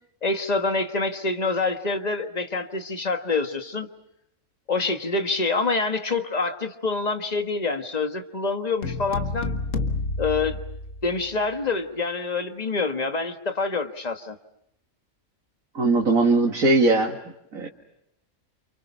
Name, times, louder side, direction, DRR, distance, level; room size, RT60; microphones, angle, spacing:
voice 1, 0.2-3.9 4.7-9.6 10.2-10.6 11.0-14.4, left 3 dB, 30° left, 6 dB, 1.7 m, -26 dB
sound 1, 8.8-11.4, left 3 dB, 70° left, 2.0 m, -29 dB
voice 2, 15.7-17.2 17.5-17.7, right 3 dB, 85° right, 0 dB, 2.5 m, -20 dB
29.5 x 29.0 x 5.6 m, 0.81 s
omnidirectional pair, 1.4 m